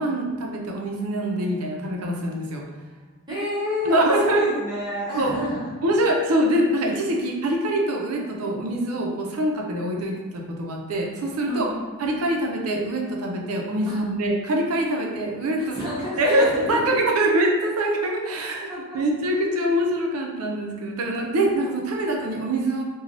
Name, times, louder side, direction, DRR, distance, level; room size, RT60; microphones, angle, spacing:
voice 1, 0.0-2.7 3.8-4.4 5.2-5.3 5.8-11.7 12.0-15.8 16.2-18.7 18.9-22.8, right 1 dB, 80° right, 0 dB, 0.5 m, -24 dB
voice 2, 3.3-5.8 7.1-7.2 11.5-12.0 13.9-14.0 15.6-17.0 18.7-18.8, left 1 dB, 20° right, -9 dB, 0.8 m, -29 dB
3.1 x 2.2 x 2.5 m, 1.3 s
head